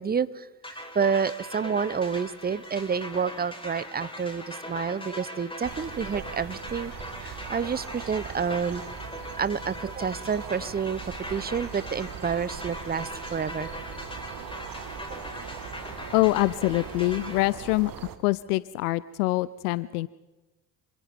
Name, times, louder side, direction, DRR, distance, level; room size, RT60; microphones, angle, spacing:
voice 1, 0.0-6.9 7.2-8.8 9.4-13.7, right 6 dB, 20° right, 17 dB, 0.9 m, -29 dB
sound 1, 0.6-17.4, left 1 dB, 10° left, 4.6 m, -40 dB
sound 2, 5.6-18.2, right 7 dB, 40° right, 1.9 m, -41 dB
voice 2, 16.1-17.9 18.2-20.1, left 19 dB, 65° left, 19 dB, 0.6 m, -25 dB
27.0 x 26.5 x 3.8 m, 1.1 s
figure-of-eight pair, 50°, 49 cm